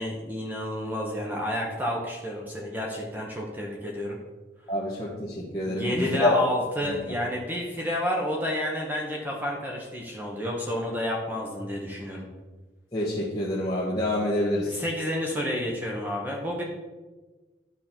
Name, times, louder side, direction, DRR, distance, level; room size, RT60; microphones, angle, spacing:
voice 1, 0.0-4.2 5.6-12.3 14.7-16.6, left 1 dB, 10° right, -2 dB, 1.1 m, -30 dB
voice 2, 4.7-6.3 6.9-7.1 12.9-14.8, left 1 dB, 20° left, -7 dB, 1.6 m, -27 dB
11.0 x 6.4 x 4.4 m, 1.3 s
head